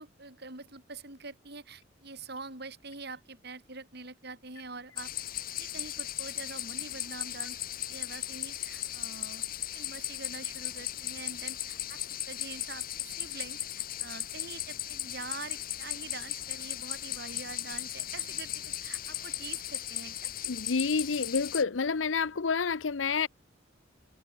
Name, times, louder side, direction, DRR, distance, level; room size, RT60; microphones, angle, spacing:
voice 1, 0.0-9.5 9.7-20.3, right 4 dB, 60° right, 7.7 m, -45 dB
sound 1, 5.0-21.6, left 13 dB, 50° left, 1.3 m, -37 dB
voice 2, 20.5-23.3, left 5 dB, 80° left, 0.7 m, -29 dB
head